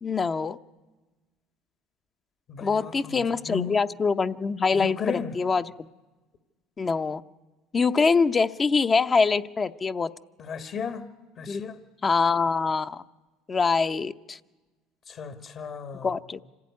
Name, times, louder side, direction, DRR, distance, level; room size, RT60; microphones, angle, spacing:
voice 1, 0.0-0.6 2.6-5.9 6.8-7.2 7.7-10.1 11.5-11.6 12.0-13.0 13.5-14.4 16.0-16.4, left 4 dB, 25° left, 0.7 m, -24 dB
voice 2, 2.5-3.8 4.7-5.4 10.4-11.1 11.4-11.8 15.1-16.1, left 6 dB, 50° left, 1.5 m, -35 dB
26.0 x 16.5 x 9.6 m
supercardioid pair, 100°, 0 cm